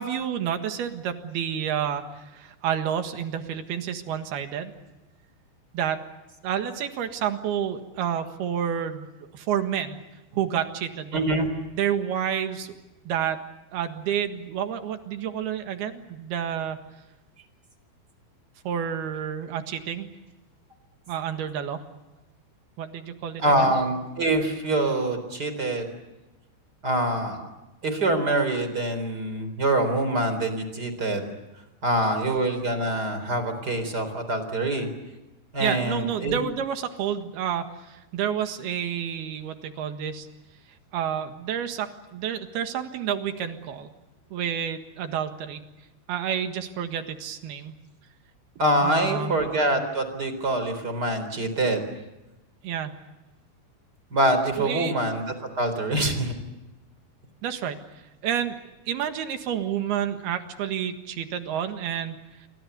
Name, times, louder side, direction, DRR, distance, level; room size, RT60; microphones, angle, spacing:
voice 1, 0.0-4.7 5.7-6.0 6.4-10.0 10.3-11.2 11.7-12.7 13.1-13.4 13.7-16.8 18.6-20.1 21.1-21.8 22.8-23.7 35.6-40.3 40.9-43.9 44.3-45.6 46.1-47.8 48.8-49.3 52.6-52.9 54.6-54.9 57.4-57.8 58.2-58.6 58.9-62.5, right 9 dB, 65° right, 7 dB, 3.3 m, -29 dB
voice 2, 11.1-11.5 23.4-25.9 26.8-27.5 27.8-31.3 31.8-34.9 35.5-36.4 48.6-51.8 54.1-56.4, right 1 dB, 20° right, 9 dB, 3.9 m, -25 dB
29.0 x 24.5 x 6.9 m, 1.0 s
omnidirectional pair, 5.3 m